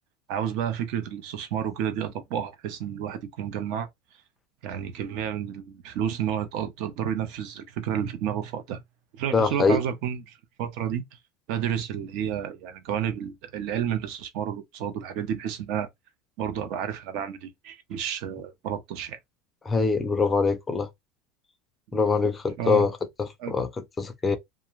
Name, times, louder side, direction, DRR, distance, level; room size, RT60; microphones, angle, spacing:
voice 1, 0.3-3.9 4.6-8.8 9.1-11.0 11.5-15.9 16.4-19.2 21.9-22.0 22.6-22.9 23.4-23.5, right 9 dB, 55° right, 0.7 m, -31 dB
voice 2, 9.3-9.8 19.6-20.9 21.9-24.4, left 4 dB, 15° left, 0.4 m, -24 dB
2.5 x 2.3 x 3.0 m
cardioid pair, 165°, 0 cm